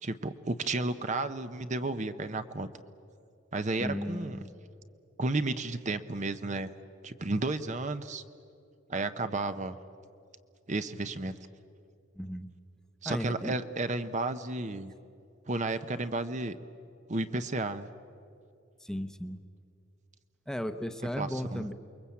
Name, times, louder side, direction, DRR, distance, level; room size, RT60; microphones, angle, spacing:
voice 1, 0.0-2.7 3.5-4.4 5.2-6.7 7.0-8.2 8.9-9.8 10.7-11.4 13.0-14.9 15.5-16.6 17.1-17.9 21.2-21.7, right 2 dB, 35° right, 10 dB, 0.8 m, -32 dB
voice 2, 3.8-4.5 12.2-12.5 13.0-13.5 18.8-19.4 20.5-21.7, equal, 5° left, 9 dB, 0.8 m, -35 dB
28.5 x 22.0 x 8.5 m, 2.5 s
head